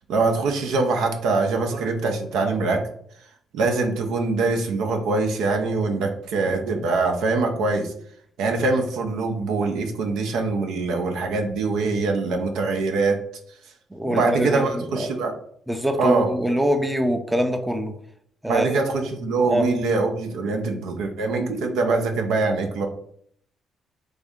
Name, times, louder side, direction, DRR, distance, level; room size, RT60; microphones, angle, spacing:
voice 1, 0.1-2.8 3.5-7.9 8.4-13.2 14.1-15.3 16.0-16.3 18.5-22.9, right 3 dB, 85° right, 4 dB, 0.6 m, -23 dB
voice 2, 13.9-15.1 15.7-17.9 18.4-18.8 19.5-19.7, equal, 5° right, 6 dB, 0.5 m, -24 dB
3.3 x 2.6 x 3.5 m, 0.64 s
cardioid pair, 90°, 0 cm